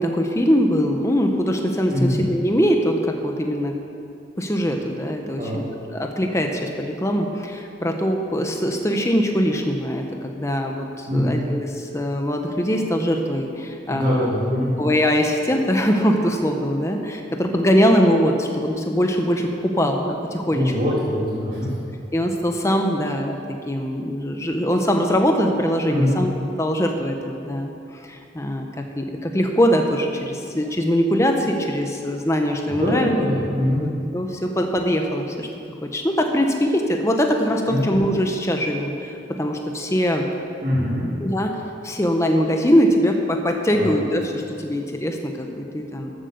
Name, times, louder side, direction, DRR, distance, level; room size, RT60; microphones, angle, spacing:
voice 1, 0.0-3.7 4.4-5.6 5.9-14.3 14.8-20.7 22.1-23.4 23.7-26.3 26.6-33.1 33.8-35.5 35.8-40.2 41.2-41.5 41.8-46.1, equal, 15° left, 3 dB, 0.8 m, -22 dB
voice 2, 13.9-14.7 20.5-21.7 25.9-26.2 32.8-33.8 37.7-37.8 40.6-41.1 43.7-43.9, left 1 dB, 35° right, -11 dB, 2.7 m, -23 dB
13.5 x 7.8 x 6.5 m, 2.6 s
head